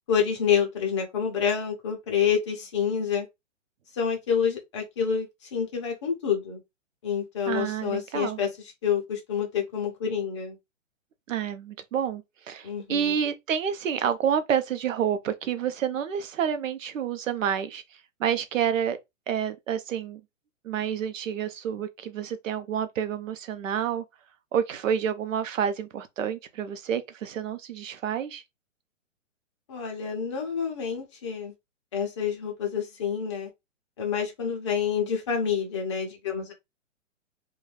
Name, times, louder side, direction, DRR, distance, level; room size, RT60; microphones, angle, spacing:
voice 1, 0.1-3.3 4.0-5.3 5.5-6.6 7.0-8.5 8.8-10.6 12.6-13.2 29.7-31.5 31.9-33.5 34.0-36.5, left 7 dB, 25° left, 0.5 m, -28 dB
voice 2, 7.5-8.4 11.3-17.8 18.2-19.0 19.3-20.2 20.6-24.0 24.5-28.4, right 8 dB, 85° right, 0.7 m, -29 dB
2.5 x 2.2 x 3.1 m
hypercardioid pair, 160°, 38 cm